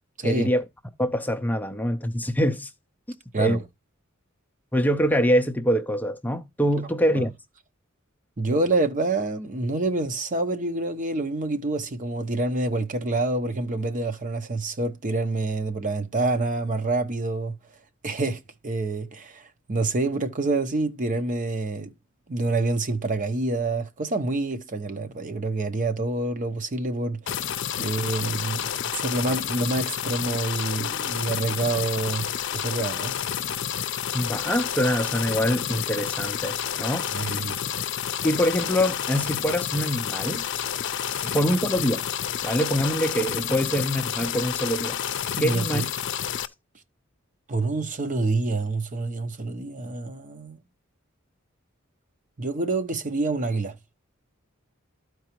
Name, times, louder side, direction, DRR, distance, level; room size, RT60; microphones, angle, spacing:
voice 1, 0.2-0.6 1.0-2.7 3.4-3.6 4.7-7.3 34.1-37.4 38.2-40.5 41.2-42.1 42.4-45.0 45.4-45.8, equal, 10° left, 0.5 m, -24 dB
voice 2, 8.4-17.5 18.0-21.9 22.3-27.4 27.8-32.3 32.5-33.1 37.1-37.6 41.1-41.4 45.4-45.9 47.5-50.6 52.4-53.8, right 2 dB, 40° right, 0.8 m, -27 dB
sound 1, 27.3-46.5, left 9 dB, 60° left, 0.6 m, -30 dB
13.5 x 4.6 x 3.0 m
head